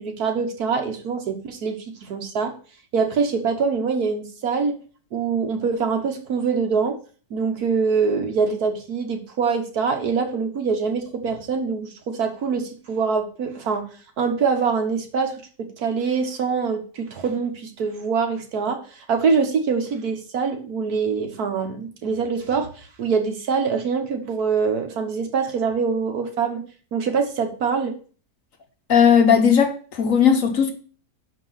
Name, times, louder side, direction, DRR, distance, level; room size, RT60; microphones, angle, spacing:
voice 1, 0.0-2.5 2.9-4.8 5.1-7.0 7.3-13.9 14.2-22.7 23.0-26.6 26.9-27.9, right 5 dB, 65° right, 1.5 m, -24 dB
voice 2, 28.9-30.7, left 7 dB, 55° left, 1.3 m, -17 dB
6.0 x 5.2 x 5.5 m
omnidirectional pair, 1.9 m